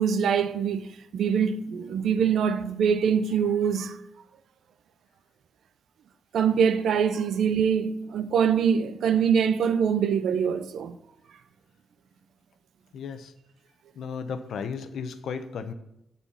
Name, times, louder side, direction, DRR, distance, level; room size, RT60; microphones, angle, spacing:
voice 1, 0.0-4.0 6.3-11.0, right 7 dB, 75° right, 0.6 m, -24 dB
voice 2, 12.9-13.3 14.0-15.7, left 6 dB, 75° left, 0.7 m, -34 dB
10.0 x 4.3 x 7.0 m
wide cardioid pair, 145°, 0 cm